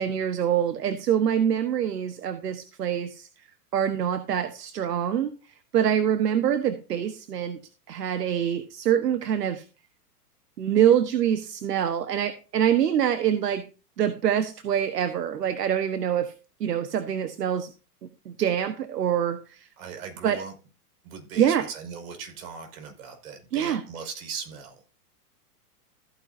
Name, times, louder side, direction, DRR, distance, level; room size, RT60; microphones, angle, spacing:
voice 1, 0.0-3.3 3.7-7.6 7.9-9.6 10.6-13.6 14.0-16.3 16.6-17.7 18.2-19.7 20.2-20.4 21.3-21.7 23.5-23.8, right 9 dB, 85° right, 10 dB, 1.4 m, -25 dB
voice 2, 19.8-20.5 21.0-24.8, right 6 dB, 65° right, 4 dB, 5.6 m, -39 dB
15.0 x 9.7 x 2.7 m, 0.33 s
hypercardioid pair, 135°, 47 cm